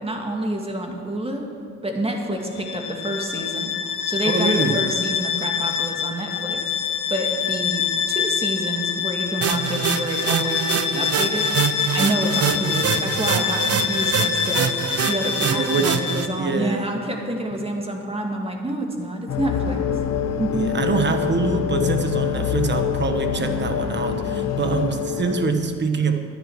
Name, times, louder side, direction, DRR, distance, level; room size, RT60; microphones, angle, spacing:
voice 1, 0.0-1.5 1.8-14.7 15.1-19.8 20.4-20.8, right 1 dB, 20° right, 2 dB, 2.2 m, -28 dB
Bowed string instrument, 2.5-16.4, left 8 dB, 85° left, 1.1 m, -26 dB
voice 2, 4.2-4.9 15.4-16.9 20.5-26.2, right 4 dB, 35° right, 7 dB, 1.3 m, -24 dB
sound 1, 9.4-16.3, right 8 dB, 55° right, 0.7 m, -25 dB
sound 2, 19.3-25.5, left 9 dB, 60° left, 1.1 m, -25 dB
12.5 x 10.0 x 6.3 m, 2.4 s
cardioid pair, 90°, 30 cm